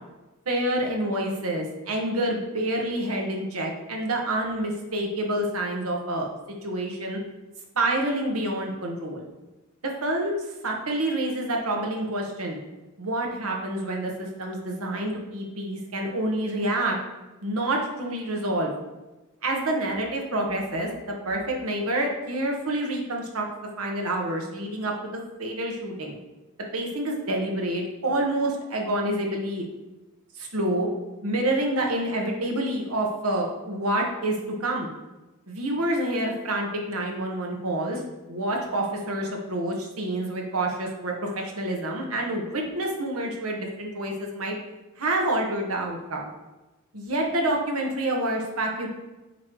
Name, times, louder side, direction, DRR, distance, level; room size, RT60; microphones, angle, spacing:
voice 1, 0.4-6.3 6.6-7.2 7.7-9.3 9.8-10.3 10.6-12.6 13.0-17.0 17.4-18.7 19.4-23.5 23.8-26.2 26.7-29.6 30.4-30.9 31.2-34.9 35.5-38.0 38.3-44.6 45.0-46.3 46.9-48.9, right 1 dB, 90° right, 0 dB, 1.3 m, -28 dB
8.2 x 3.3 x 4.6 m, 1.1 s
head